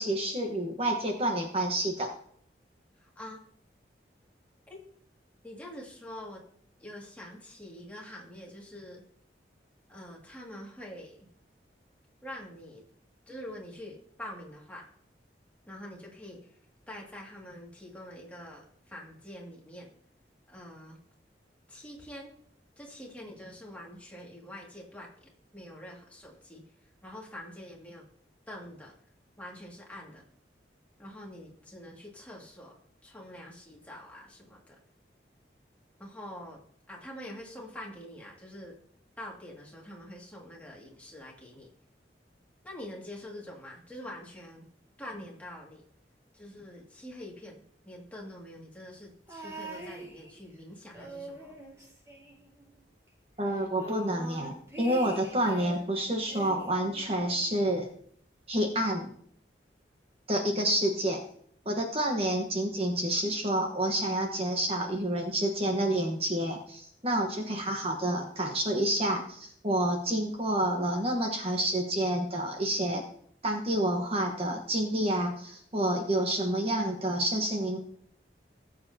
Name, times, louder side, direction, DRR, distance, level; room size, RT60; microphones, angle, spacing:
voice 1, 0.0-2.1 53.4-57.9 58.5-59.1 60.3-61.2 61.6-73.0 73.4-77.8, right 1 dB, 35° right, 2 dB, 1.2 m, -29 dB
voice 2, 3.0-3.4 4.7-4.8 5.4-6.4 6.8-9.0 9.9-11.3 12.2-12.8 13.3-14.8 15.7-16.5 16.9-19.9 20.5-21.0 21.7-22.3 22.8-26.6 27.0-28.0 28.5-28.9 29.4-30.2 31.0-34.8 36.0-36.6 36.9-38.8 39.2-41.7 42.6-44.7 45.0-45.8 46.3-47.6 47.9-51.5, left 1 dB, 10° left, -3 dB, 2.2 m, -45 dB
sound 1, 49.3-50.6 50.9-52.8 53.1-53.2 53.5-55.9 56.3-57.5 58.4-58.5, right 2 dB, 15° right, 2.2 m, -44 dB
19.0 x 7.7 x 2.8 m, 0.63 s
head